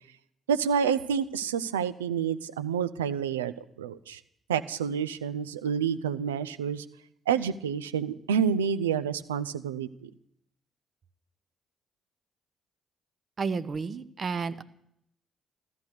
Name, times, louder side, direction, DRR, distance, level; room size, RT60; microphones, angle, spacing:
voice 1, 0.5-4.2 4.5-6.8 7.3-10.1, right 7 dB, 80° right, 12 dB, 0.5 m, -28 dB
voice 2, 13.4-14.6, right 5 dB, 40° right, 12 dB, 1.0 m, -31 dB
14.0 x 14.0 x 6.7 m, 0.74 s
figure-of-eight pair, 45°, 0 cm